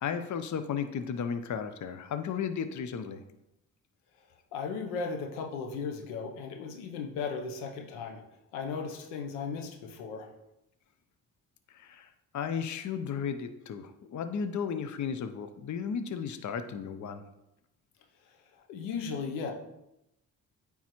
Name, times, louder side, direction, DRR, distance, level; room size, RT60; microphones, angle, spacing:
voice 1, 0.0-3.2 11.7-12.1 12.3-17.2, left 7 dB, 45° left, 9 dB, 0.7 m, -34 dB
voice 2, 4.5-8.2 8.5-10.3 18.7-19.5, left 5 dB, 90° left, 3 dB, 0.8 m, -36 dB
8.9 x 3.7 x 3.0 m, 0.87 s
hypercardioid pair, 50°, 41 cm